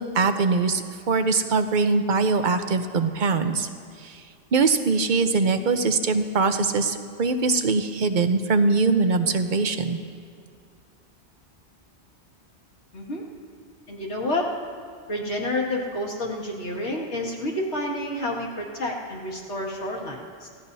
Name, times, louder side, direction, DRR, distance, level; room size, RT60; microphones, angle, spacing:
voice 1, 0.0-3.7 4.0-4.2 4.5-10.0, right 4 dB, 50° right, 8 dB, 0.9 m, -22 dB
voice 2, 12.9-13.2 13.9-14.5 15.1-20.5, left 1 dB, 85° left, -2 dB, 2.4 m, -29 dB
29.5 x 16.5 x 2.7 m, 2.2 s
omnidirectional pair, 1.1 m